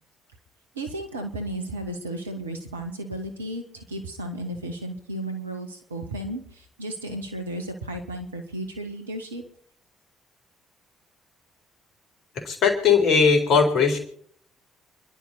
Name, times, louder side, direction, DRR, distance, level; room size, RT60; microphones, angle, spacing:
voice 1, 0.8-6.4 6.8-9.4, right 1 dB, 80° right, 6 dB, 1.9 m, -34 dB
voice 2, 12.4-14.0, left 5 dB, 55° left, 5 dB, 4.1 m, -19 dB
28.0 x 11.5 x 4.3 m, 0.62 s
figure-of-eight pair, 45°, 0 cm